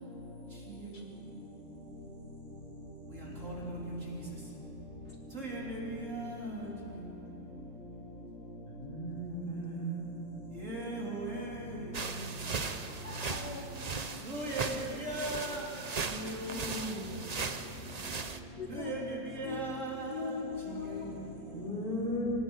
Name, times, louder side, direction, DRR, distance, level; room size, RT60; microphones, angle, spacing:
voice 1, 5.3-5.8 6.1-6.3 10.6-11.5 14.3-14.7 15.0-15.6 16.2-16.7 18.7-19.0 19.4-20.1, right 2 dB, 40° right, -4 dB, 4.0 m, -37 dB
voice 2, 8.7-10.4 21.5-22.4, equal, 25° left, -4 dB, 5.7 m, -36 dB
sound 1, 11.9-18.4, right 5 dB, 70° right, 0.3 m, -38 dB
voice 3, 12.9-13.6 18.6-18.9 19.4-19.6 20.1-21.3, left 5 dB, 60° left, 1 dB, 1.9 m, -40 dB
28.0 x 17.5 x 5.7 m, 2.8 s
omnidirectional pair, 2.0 m